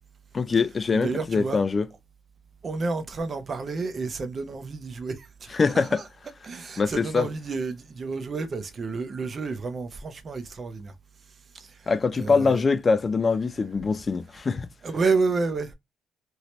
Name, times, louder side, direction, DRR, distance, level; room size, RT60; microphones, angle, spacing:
voice 1, 0.3-1.9 5.5-6.0 6.8-7.3 11.9-14.7, left 4 dB, 35° left, 0.4 m, -23 dB
voice 2, 1.0-1.6 2.6-5.6 6.4-10.9 11.5-11.9 12.2-12.6 14.8-15.7, right 4 dB, 40° right, 0.7 m, -30 dB
3.0 x 2.7 x 3.1 m
cardioid pair, 90°, 0 cm